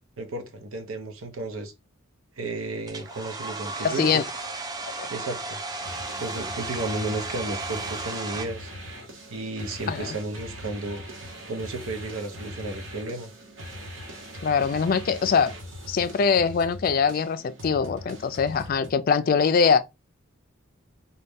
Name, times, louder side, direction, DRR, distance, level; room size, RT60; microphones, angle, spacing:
voice 1, 0.2-1.7 2.4-4.2 5.1-5.6 6.2-8.7 9.3-11.0 11.5-13.3, right 2 dB, 85° right, 0.8 m, -33 dB
Domestic sounds home sounds, 2.9-8.5, right 3 dB, 20° right, 0.5 m, -34 dB
voice 2, 3.8-4.3 4.8-5.1 9.9-10.2 14.4-15.5 15.9-19.8, left 6 dB, 45° left, 0.3 m, -23 dB
sound 1, 5.8-18.9, equal, 70° right, 1.1 m, -41 dB
4.0 x 2.3 x 3.5 m
head